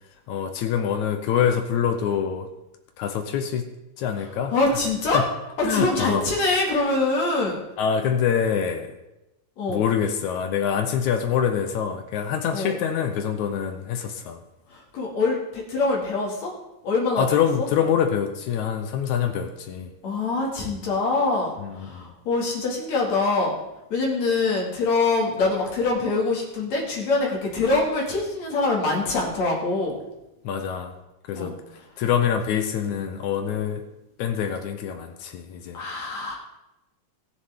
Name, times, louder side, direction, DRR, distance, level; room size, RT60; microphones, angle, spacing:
voice 1, 0.3-2.5 3.0-3.7 4.0-4.5 5.1-5.3 5.6-6.3 7.8-9.0 9.7-14.4 17.2-19.9 21.6-22.1 30.4-30.9 31.3-33.9 34.2-35.8, left 8 dB, 75° left, 7 dB, 2.0 m, -25 dB
voice 2, 4.5-5.3 5.6-7.6 9.6-9.8 12.5-12.8 14.7-16.5 16.8-17.7 20.0-23.5 23.9-29.9 31.3-31.5 35.7-36.4, left 3 dB, 55° left, -2 dB, 3.3 m, -24 dB
20.5 x 7.0 x 3.6 m, 0.95 s
omnidirectional pair, 3.9 m